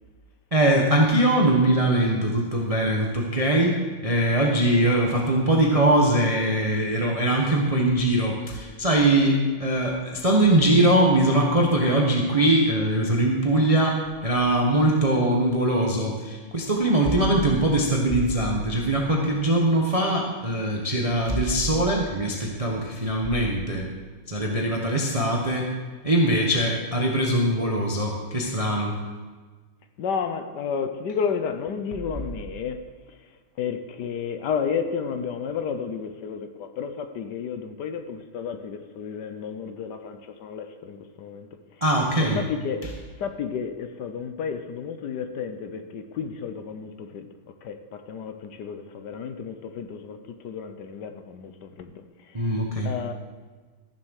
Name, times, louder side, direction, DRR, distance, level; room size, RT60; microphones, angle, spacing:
voice 1, 0.5-23.9 24.3-25.7 26.0-29.0 41.8-42.4 42.8-42.9 52.3-53.0, right 1 dB, 20° right, 1.1 m, -22 dB
voice 2, 30.0-33.3 33.6-41.8 42.2-47.3 47.6-52.6 52.8-53.1, left 6 dB, 65° left, 1.3 m, -32 dB
14.0 x 7.4 x 6.5 m
omnidirectional pair, 2.2 m